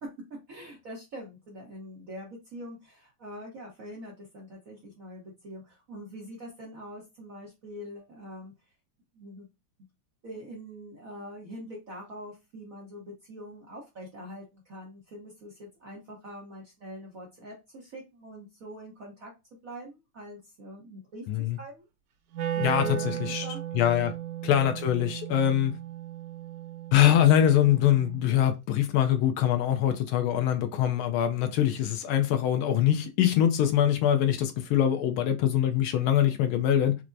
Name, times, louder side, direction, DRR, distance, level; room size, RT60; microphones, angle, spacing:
voice 1, 0.5-8.5 9.1-9.5 10.2-19.3 19.6-21.9 22.5-23.6 23.9-24.1, equal, 60° right, 0.9 m, -43 dB
voice 2, 21.3-21.6 22.6-22.9 23.2-23.5 23.7-24.1 24.4-25.7 26.9-37.0, left 10 dB, 80° left, 1.4 m, -23 dB
Wind instrument woodwind instrument, 22.3-28.4, right 11 dB, 85° right, 1.6 m, -36 dB
4.5 x 2.0 x 2.5 m
omnidirectional pair, 2.4 m